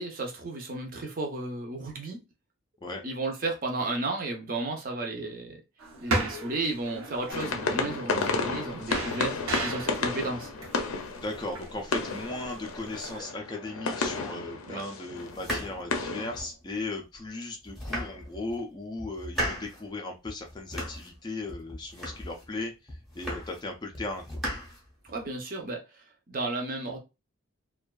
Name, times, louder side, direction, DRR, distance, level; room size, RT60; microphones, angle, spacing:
voice 1, 0.0-2.2 3.0-5.6 6.0-10.5 14.7-14.8 25.0-27.0, right 2 dB, 40° right, 0.5 m, -33 dB
sound 1, 5.8-13.2, right 2 dB, 80° right, 0.7 m, -36 dB
sound 2, 7.3-16.4, left 4 dB, 80° left, 0.5 m, -32 dB
voice 2, 11.2-24.4, left 2 dB, 20° left, 0.3 m, -37 dB
sound 3, 15.3-16.6 17.1-17.2 17.6-18.6 19.0-19.8 20.2-21.2 21.5-22.5 22.9-23.7 23.9-25.3, equal, ahead, 0.7 m, -36 dB
2.4 x 2.2 x 2.2 m
head